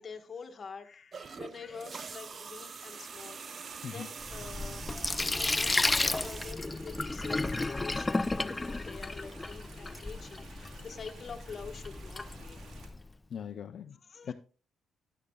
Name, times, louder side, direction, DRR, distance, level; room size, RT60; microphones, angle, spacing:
voice 1, 0.0-12.8 13.9-14.3, left 5 dB, 40° left, 5 dB, 1.5 m, -46 dB
sound 1, 1.1-6.5, right 5 dB, 45° right, 0.7 m, -44 dB
sound 2, 2.9-12.9, right 5 dB, 70° right, 2.3 m, -53 dB
Sink (filling or washing), 4.2-13.0, left 2 dB, 20° left, 0.4 m, -33 dB
voice 2, 13.3-14.0 14.2-14.3, left 8 dB, 60° left, 7 dB, 0.6 m, -40 dB
13.0 x 10.0 x 2.4 m, 0.37 s
cardioid pair, 90°, 0 cm